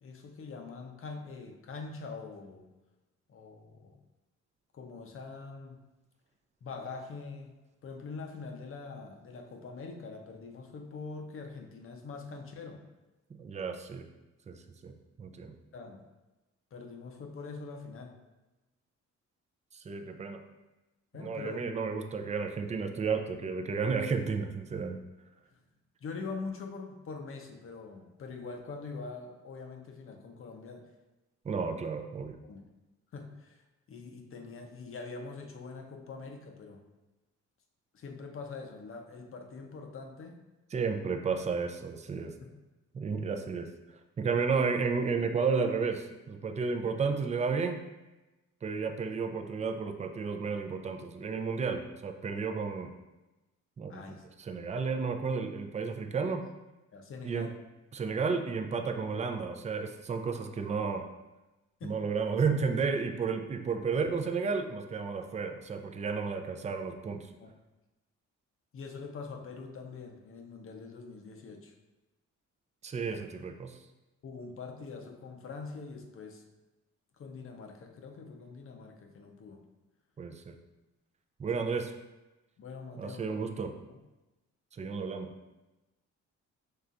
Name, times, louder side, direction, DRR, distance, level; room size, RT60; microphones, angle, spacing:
voice 1, 0.0-2.7 3.3-4.0 4.7-5.8 6.6-7.6 7.8-12.9 15.7-16.0 16.7-18.2 21.1-21.6 25.5-25.6 26.0-30.9 32.4-32.6 33.1-33.6 33.9-36.8 37.9-40.4 42.4-42.5 53.9-54.2 56.9-57.6 61.8-62.0 67.4-67.5 68.7-71.7 74.2-76.4 77.2-79.6 81.6-81.7 82.6-83.3 83.9-84.0, left 4 dB, 45° left, 4 dB, 0.7 m, -44 dB
voice 2, 13.3-14.1 14.5-14.6 14.8-15.6 19.7-20.4 21.1-25.0 31.4-32.4 40.7-42.3 42.9-43.7 44.2-47.8 48.6-52.9 53.8-54.0 54.4-56.5 57.2-57.5 57.9-61.0 61.8-67.3 72.8-73.7 80.2-80.5 81.4-81.9 83.0-83.7 84.8-85.3, right 5 dB, 25° right, 5 dB, 0.4 m, -32 dB
5.5 x 3.3 x 2.5 m, 1.1 s
cardioid pair, 90°, 30 cm